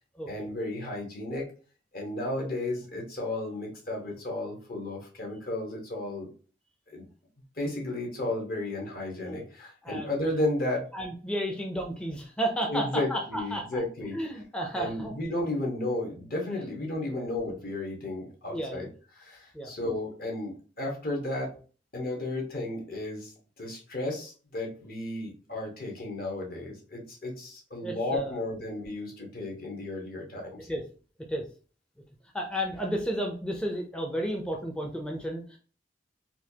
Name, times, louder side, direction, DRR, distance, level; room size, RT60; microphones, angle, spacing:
voice 1, 0.3-1.5 1.9-6.3 6.9-7.1 7.6-10.9 12.7-14.2 14.8-18.9 19.1-21.6 21.9-23.3 23.6-30.6, left 2 dB, 55° left, 0 dB, 1.1 m, -33 dB
voice 2, 9.8-10.3 10.9-13.8 14.1-15.1 17.1-17.3 18.5-18.9 19.5-19.7 27.8-28.4 30.7-30.8 31.3-31.5 32.3-35.6, equal, 5° left, 0 dB, 0.4 m, -32 dB
4.2 x 2.3 x 2.7 m, 0.38 s
head